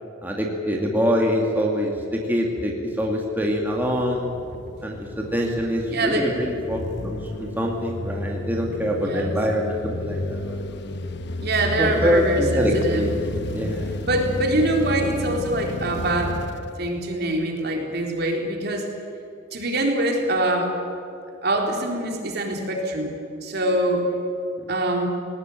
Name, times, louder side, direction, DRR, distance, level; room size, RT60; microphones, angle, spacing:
voice 1, 0.2-4.3 4.8-10.8 11.8-13.1 13.5-13.9 24.6-24.7, equal, 10° right, -1 dB, 2.3 m, -24 dB
sound 1, 3.1-17.5, left 1 dB, 60° left, 1.1 m, -32 dB
voice 2, 5.9-6.3 9.0-9.4 11.4-13.0 14.0-16.4 16.8-18.8 19.5-20.7 21.4-23.2 23.4-24.1 24.7-25.1, right 1 dB, 55° right, 1 dB, 3.9 m, -24 dB
19.5 x 19.0 x 9.2 m, 2.7 s
head